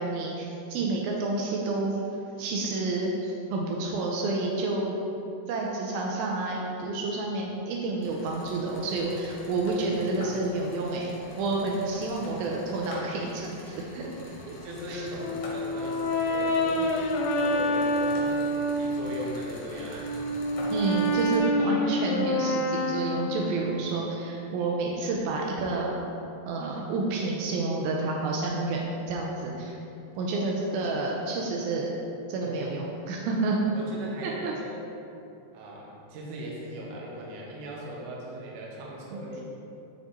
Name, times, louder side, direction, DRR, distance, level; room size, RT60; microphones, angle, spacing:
voice 1, 0.0-2.0 2.4-4.9 5.5-14.1 14.5-14.6 14.9-15.0 20.7-26.0 26.5-29.8 30.2-31.9 32.3-33.6 34.2-34.5 39.1-39.2, right 3 dB, 90° right, -1 dB, 2.1 m, -29 dB
sound 1, 8.0-21.4, left 1 dB, 65° left, 2.3 m, -45 dB
voice 2, 14.2-16.9 17.4-20.1 23.4-23.7 32.4-32.7 33.7-34.9 35.5-39.4, right 1 dB, 70° right, -3 dB, 2.0 m, -39 dB
Brass instrument, 15.2-19.2 19.7-23.8, equal, 80° left, 2.2 m, -27 dB
9.7 x 3.7 x 4.1 m, 2.7 s
omnidirectional pair, 4.8 m